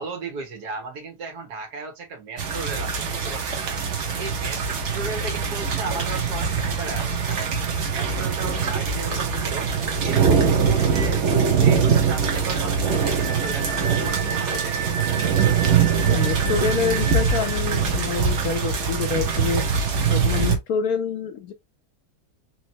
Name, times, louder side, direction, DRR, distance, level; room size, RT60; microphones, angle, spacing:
voice 1, 0.0-3.6 4.2-4.6 4.9-7.5 7.9-9.7 10.0-11.3 11.6-14.9, right 3 dB, 70° right, 1.9 m, -35 dB
sound 1, 2.4-20.6, right 6 dB, 50° right, 1.0 m, -23 dB
Wind instrument woodwind instrument, 12.9-17.6, right 5 dB, 30° right, 1.3 m, -33 dB
voice 2, 16.0-19.6 20.1-21.5, left 6 dB, 70° left, 1.0 m, -27 dB
4.3 x 3.0 x 2.7 m
omnidirectional pair, 1.8 m